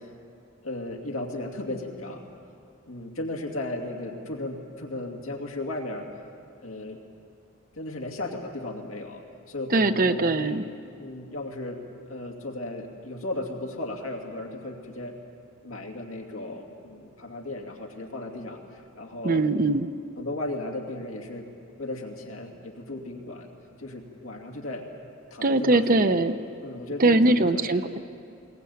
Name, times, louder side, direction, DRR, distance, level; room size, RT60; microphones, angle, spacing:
voice 1, 0.6-2.3 2.9-6.1 6.6-7.0 7.7-10.6 11.0-15.2 15.6-19.4 20.2-21.5 21.8-23.5 23.8-24.9 25.3-26.2 26.6-27.9, left 2 dB, 90° left, 1 dB, 2.7 m, -35 dB
voice 2, 9.7-10.6 19.2-19.9 25.4-26.4 27.0-28.0, right 2 dB, 40° right, 10 dB, 0.7 m, -21 dB
21.0 x 19.0 x 8.7 m, 2.5 s
head